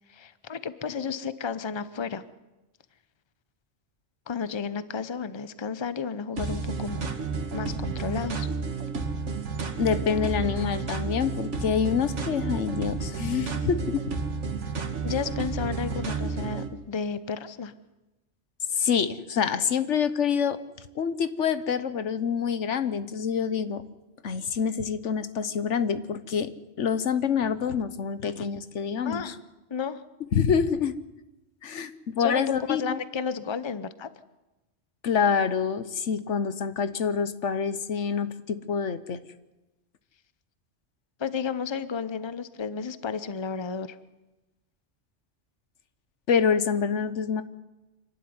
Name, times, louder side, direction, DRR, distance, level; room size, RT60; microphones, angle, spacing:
voice 1, 0.0-2.2 4.3-7.1 7.5-8.5 15.0-17.7 29.0-29.4 29.7-30.0 32.2-34.1 41.2-44.0, left 6 dB, 25° left, 14 dB, 0.8 m, -32 dB
sound 1, 6.4-16.7, right 4 dB, 90° right, 1.9 m, -31 dB
voice 2, 9.8-14.1 18.7-20.6 21.0-23.8 24.2-26.5 26.8-29.2 30.3-31.0 31.6-33.0 35.0-39.2 46.3-47.4, left 6 dB, 85° left, 13 dB, 1.3 m, -26 dB
26.0 x 12.0 x 9.7 m, 1.0 s
omnidirectional pair, 1.2 m